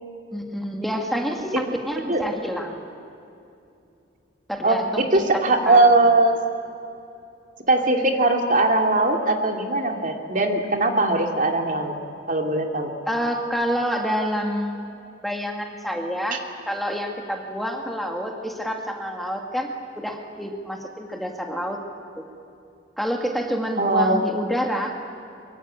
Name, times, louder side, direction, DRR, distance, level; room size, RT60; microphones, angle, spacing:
voice 1, 0.3-2.8 4.5-5.0 5.7-5.9 13.1-14.9 15.2-16.4 16.7-21.8 22.2-22.3 23.0-24.9, equal, ahead, 2 dB, 2.0 m, -28 dB
voice 2, 4.6-6.4 7.7-11.9 12.3-12.9 16.3-16.4 23.8-24.2, right 2 dB, 45° right, 3 dB, 2.5 m, -20 dB
24.0 x 23.5 x 8.8 m, 2.6 s
head